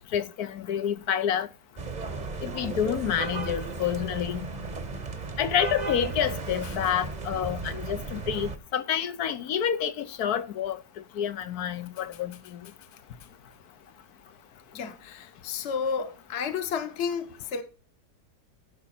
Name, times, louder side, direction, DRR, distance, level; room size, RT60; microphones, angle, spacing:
voice 1, 0.1-1.5 2.4-4.4 5.4-10.8 11.2-12.3, left 9 dB, 70° left, 1.3 m, -28 dB
sound 1, 1.8-8.6, right 4 dB, 30° right, 1.0 m, -35 dB
voice 2, 14.7-17.6, left 6 dB, 50° left, 1.3 m, -32 dB
15.5 x 5.9 x 4.3 m
omnidirectional pair, 1.7 m